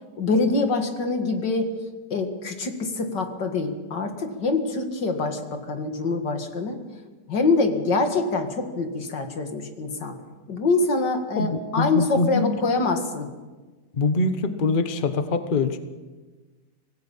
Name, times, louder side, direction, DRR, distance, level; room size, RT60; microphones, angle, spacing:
voice 1, 0.2-1.7 2.1-6.8 7.3-10.2 10.5-13.3, left 3 dB, 80° left, 5 dB, 2.6 m, -25 dB
voice 2, 11.4-12.5 13.9-15.8, left 3 dB, 35° left, 9 dB, 1.0 m, -24 dB
25.5 x 18.0 x 5.6 m, 1.3 s
omnidirectional pair, 1.9 m